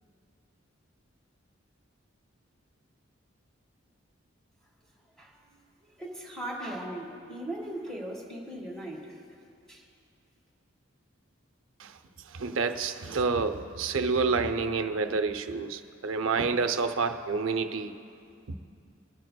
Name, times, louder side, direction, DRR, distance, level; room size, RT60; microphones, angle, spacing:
voice 1, 5.2-9.2 9.7-9.8, right 1 dB, 5° left, -3 dB, 1.8 m, -39 dB
voice 2, 12.3-17.9, right 4 dB, 80° right, 9 dB, 0.6 m, -28 dB
27.0 x 9.2 x 2.3 m, 2.5 s
head